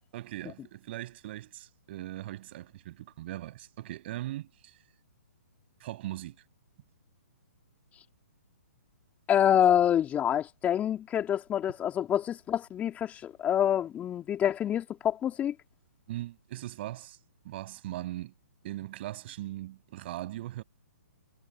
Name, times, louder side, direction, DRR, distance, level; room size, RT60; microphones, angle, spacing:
voice 1, 0.1-4.7 5.8-6.4 16.1-17.2 17.4-18.3 18.6-20.6, right 15 dB, 45° right, 7.2 m, -39 dB
voice 2, 9.3-15.5, left 10 dB, 15° left, 3.1 m, -26 dB
hypercardioid pair, 135°, 8 cm